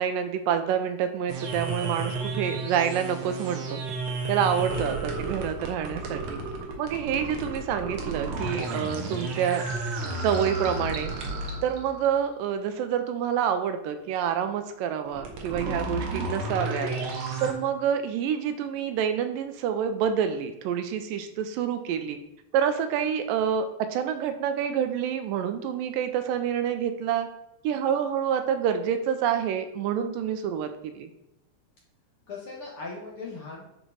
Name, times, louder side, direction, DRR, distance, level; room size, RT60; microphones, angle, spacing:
voice 1, 0.0-3.8 4.3-6.4 6.8-9.7 10.2-11.1 11.6-16.9 17.4-22.2 22.5-23.7 23.9-27.3 27.6-31.1, right 8 dB, 85° right, 8 dB, 2.3 m, -27 dB
sound 1, 1.3-12.1 15.1-17.5, right 3 dB, 60° right, 1.8 m, -32 dB
voice 2, 32.3-33.7, left 3 dB, 55° left, -4 dB, 1.7 m, -39 dB
10.0 x 4.6 x 3.9 m, 0.88 s
omnidirectional pair, 4.0 m